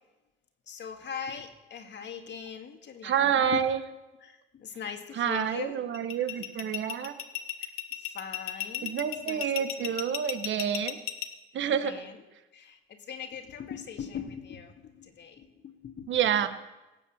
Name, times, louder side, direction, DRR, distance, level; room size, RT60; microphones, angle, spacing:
voice 1, 0.7-3.6 4.2-5.8 7.9-10.0 11.6-12.2 12.5-16.1, left 7 dB, 60° left, 6 dB, 1.9 m, -41 dB
voice 2, 3.0-3.8 5.1-7.1 8.8-11.0 11.5-12.0 16.1-16.5, right 8 dB, 65° right, 10 dB, 1.2 m, -28 dB
sound 1, 5.9-11.3, left 13 dB, 90° left, 1.1 m, -34 dB
17.5 x 7.1 x 7.2 m, 1.0 s
cardioid pair, 80°, 21 cm